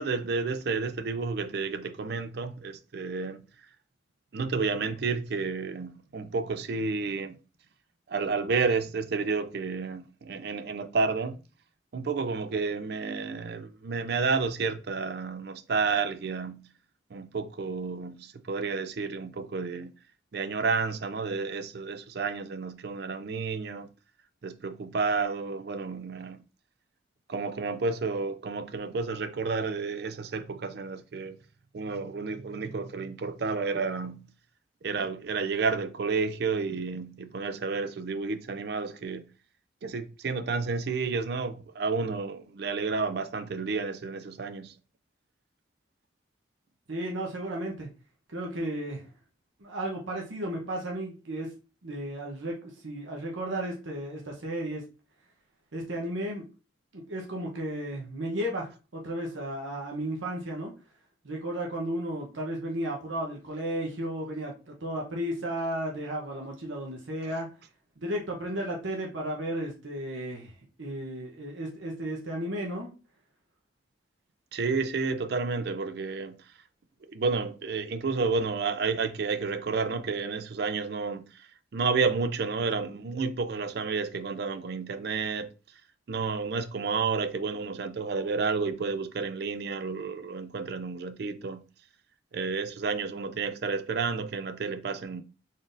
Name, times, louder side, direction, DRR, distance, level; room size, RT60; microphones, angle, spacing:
voice 1, 0.0-3.4 4.3-7.4 8.1-11.4 11.9-16.6 17.1-19.9 20.3-23.9 24.4-26.4 27.3-31.4 31.7-34.2 34.8-39.2 39.8-44.7 67.2-67.4 74.5-76.4 77.1-85.5 86.1-91.6 92.3-95.2, right 4 dB, 55° right, 0.4 m, -31 dB
voice 2, 46.9-47.9 48.3-49.1 49.6-51.5 51.8-54.9 55.7-56.5 56.9-60.7 61.2-67.5 68.0-72.9, right 1 dB, 80° right, 0.9 m, -34 dB
4.0 x 3.6 x 2.5 m
head